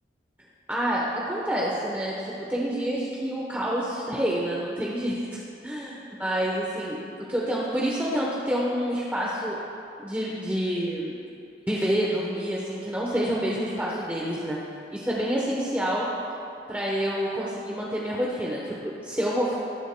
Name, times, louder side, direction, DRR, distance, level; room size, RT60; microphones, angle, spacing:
voice 1, 0.7-9.6 10.0-11.2 11.7-14.6 14.9-16.1 16.7-19.6, equal, 10° right, -5 dB, 0.9 m, -28 dB
19.0 x 8.8 x 2.2 m, 2.6 s
head